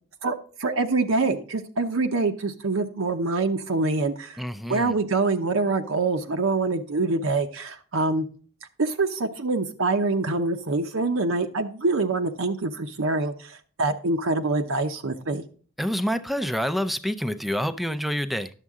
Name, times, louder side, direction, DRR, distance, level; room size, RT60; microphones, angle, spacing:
voice 1, 0.2-4.4 4.7-8.2 8.8-15.4, right 3 dB, 70° right, 6 dB, 0.8 m, -25 dB
voice 2, 4.4-4.9 15.8-18.5, equal, ahead, 12 dB, 0.5 m, -27 dB
11.0 x 7.3 x 3.6 m, 0.43 s
head